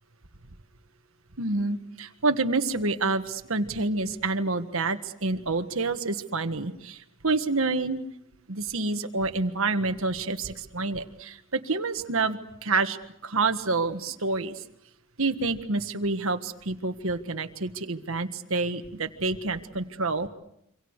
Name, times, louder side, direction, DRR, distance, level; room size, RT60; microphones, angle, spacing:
voice 1, 1.4-8.0 8.5-13.0 13.2-14.6 15.2-20.3, right 3 dB, 65° right, 8 dB, 1.6 m, -28 dB
27.5 x 25.5 x 6.6 m, 0.77 s
head